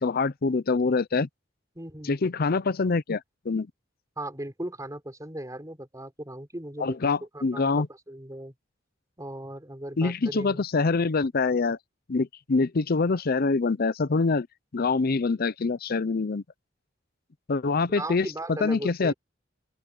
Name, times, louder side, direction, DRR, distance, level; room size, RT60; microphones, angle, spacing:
voice 1, 0.0-1.3 2.1-3.2 3.5-3.7 6.8-7.9 10.0-11.8 12.1-14.5 14.7-16.4 17.5-18.3 18.6-19.1, left 4 dB, 50° left, 0.6 m, -25 dB
voice 2, 1.8-2.2 4.2-7.0 7.3-8.5 9.2-10.6 17.9-19.1, right 1 dB, 20° right, 5.3 m, -37 dB
open air
head